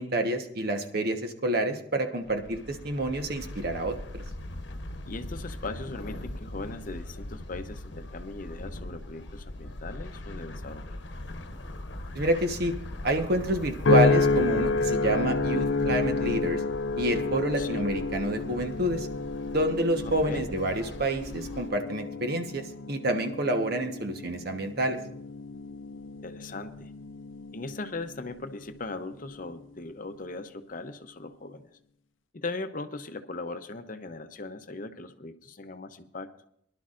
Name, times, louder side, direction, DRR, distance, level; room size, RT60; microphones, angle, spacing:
voice 1, 0.0-4.2 12.1-12.7 13.0-16.6 17.0-19.1 19.5-25.0, right 1 dB, 55° right, 6 dB, 1.2 m, -28 dB
sound 1, 2.2-21.7, left 1 dB, 65° left, 1.0 m, -41 dB
voice 2, 5.1-11.0 17.6-17.8 20.2-20.5 26.2-26.9 27.5-31.6 32.3-36.3, left 3 dB, 45° left, 8 dB, 0.7 m, -39 dB
sound 2, 13.9-28.3 28.9-29.3, left 3 dB, 85° left, 0.5 m, -30 dB
22.5 x 11.5 x 2.5 m, 0.70 s
head